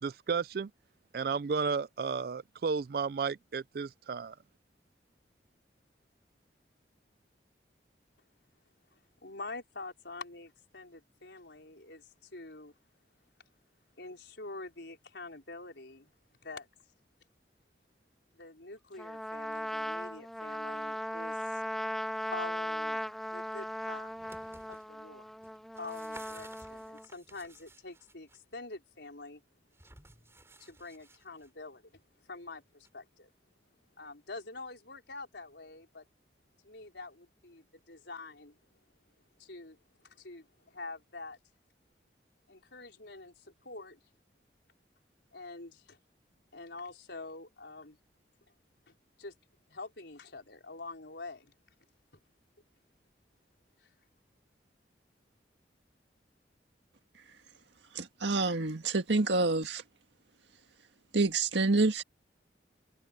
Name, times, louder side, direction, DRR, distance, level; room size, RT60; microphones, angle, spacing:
voice 1, 0.0-0.7 1.1-4.4, right 5 dB, 55° right, 0.4 m, -33 dB
voice 2, 9.2-12.7 14.0-16.1 16.4-16.7 18.4-21.6 22.3-23.0 23.3-24.1 24.7-25.3 25.8-29.4 30.6-31.9 32.3-33.3 34.0-36.1 36.6-38.6 39.4-39.8 40.1-41.4 42.5-44.0 45.3-46.0 46.5-48.0 48.9-49.3 49.7-51.5 53.8-53.9, left 3 dB, 80° left, 4.3 m, -46 dB
Trumpet, 19.0-27.0, equal, ahead, 1.8 m, -38 dB
sound 1, 23.9-24.8 25.4-28.4 29.7-31.5 32.8-32.9, right 2 dB, 15° right, 6.2 m, -55 dB
voice 3, 57.9-59.8 61.1-62.0, right 3 dB, 85° right, 1.8 m, -27 dB
open air
head